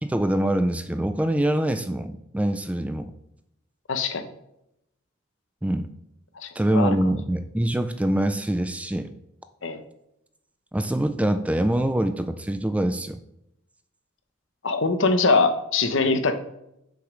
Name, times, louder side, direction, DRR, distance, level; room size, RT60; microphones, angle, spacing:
voice 1, 0.0-3.1 5.6-5.9 6.6-9.1 10.7-13.2, right 1 dB, 5° right, 10 dB, 0.4 m, -24 dB
voice 2, 3.9-4.3 6.4-7.0 9.6-9.8 14.6-16.3, left 3 dB, 65° left, 8 dB, 0.9 m, -22 dB
6.6 x 5.1 x 6.1 m, 0.82 s
head